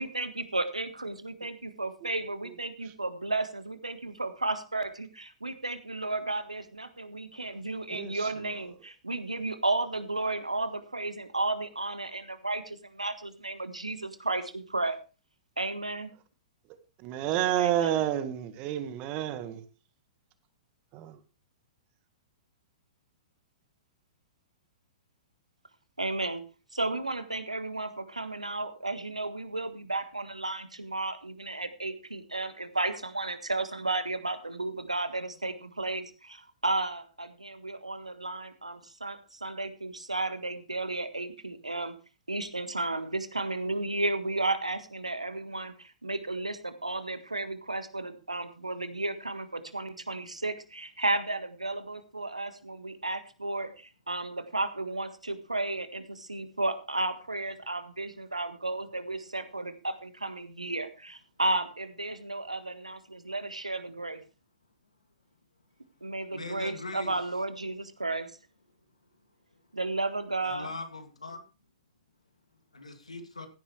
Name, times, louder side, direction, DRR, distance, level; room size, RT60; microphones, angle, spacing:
voice 1, 0.0-15.0 15.6-16.1 17.6-18.1 26.0-26.4 26.8-41.9 42.3-64.2 66.0-68.3 69.7-70.7, right 2 dB, 85° right, 1.5 m, -33 dB
voice 2, 7.9-8.3 17.0-19.6 20.9-21.2, right 12 dB, 35° right, 1.6 m, -29 dB
voice 3, 66.3-67.1 70.4-71.4 72.7-73.5, left 3 dB, 80° left, 2.5 m, -40 dB
15.5 x 10.0 x 3.3 m
figure-of-eight pair, 105°, 3 cm